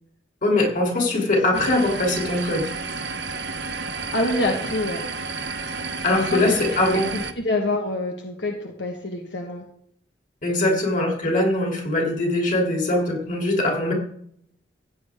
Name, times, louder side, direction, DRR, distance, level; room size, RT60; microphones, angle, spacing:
voice 1, 0.4-2.7 6.0-7.1 10.4-13.9, left 1 dB, 45° left, 1 dB, 3.1 m, -22 dB
sound 1, 1.5-7.3, right 4 dB, 65° right, 1.0 m, -31 dB
voice 2, 4.1-5.0 5.8-9.6 10.5-10.8, left 1 dB, 75° left, 1 dB, 1.5 m, -27 dB
15.5 x 8.5 x 3.6 m, 0.67 s
head